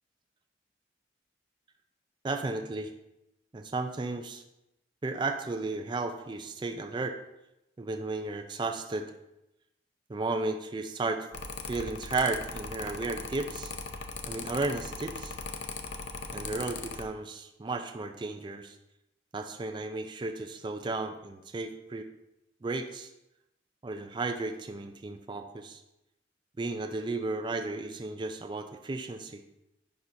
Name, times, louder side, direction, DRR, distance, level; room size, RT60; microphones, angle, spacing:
voice 1, 2.2-2.9 3.5-4.4 5.0-7.2 7.8-9.1 10.1-11.3 11.6-13.7 14.3-15.4 16.3-18.8 19.3-22.1 22.6-23.1 23.8-25.8 26.6-29.4, right 3 dB, 25° right, 5 dB, 0.3 m, -34 dB
Mechanical fan, 11.3-17.0, left 4 dB, 75° left, 0.6 m, -39 dB
10.5 x 4.1 x 2.6 m, 0.89 s
head